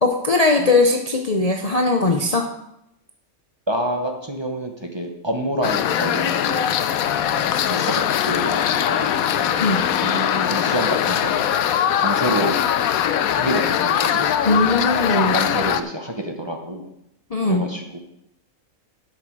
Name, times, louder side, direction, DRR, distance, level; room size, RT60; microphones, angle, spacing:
voice 1, 0.0-2.5 9.6-9.9 14.4-15.3 17.3-17.7, left 3 dB, 35° left, 2 dB, 0.7 m, -19 dB
voice 2, 3.7-6.9 7.7-12.9 13.3-14.3 14.6-14.7 15.1-16.9 17.4-18.0, right 1 dB, 20° right, 2 dB, 1.1 m, -28 dB
sound 1, 5.6-15.8, left 9 dB, 90° left, 1.1 m, -21 dB
11.5 x 6.5 x 4.8 m, 0.83 s
omnidirectional pair, 1.4 m